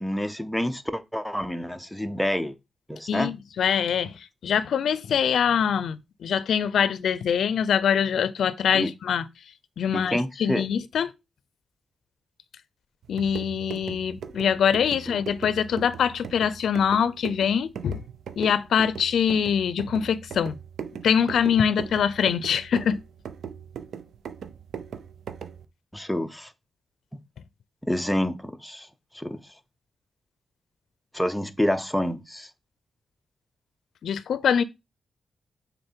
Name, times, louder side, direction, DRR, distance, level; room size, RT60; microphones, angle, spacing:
voice 1, 0.0-2.6 2.9-3.3 8.7-8.9 9.9-10.6 15.1-15.2 25.9-26.5 27.9-28.9 29.1-29.4 31.1-32.5, left 1 dB, 5° left, 0.7 m, -28 dB
voice 2, 3.1-9.2 9.8-11.1 13.1-18.0 18.4-20.6 21.0-23.0 34.0-34.6, left 7 dB, 85° left, 0.5 m, -24 dB
sound 1, 13.0-25.7, right 7 dB, 85° right, 0.7 m, -39 dB
6.5 x 4.1 x 4.5 m
wide cardioid pair, 110°, 0 cm